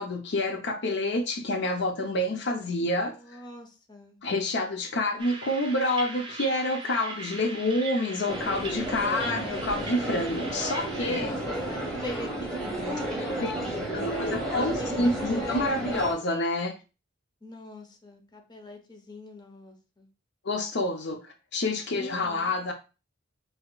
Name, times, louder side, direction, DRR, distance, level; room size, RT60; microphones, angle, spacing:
voice 1, 0.0-3.2 4.2-11.3 13.2-13.5 13.9-16.8 20.4-22.7, left 1 dB, 60° left, 0.6 m, -28 dB
voice 2, 3.1-4.2 9.0-9.6 11.1-15.8 17.4-20.1 21.9-22.5, left 1 dB, 20° left, 0.7 m, -43 dB
sound 1, 5.2-11.2, right 3 dB, 25° right, 0.8 m, -40 dB
sound 2, 8.3-16.1, right 1 dB, 5° left, 1.3 m, -32 dB
5.7 x 2.8 x 2.3 m
head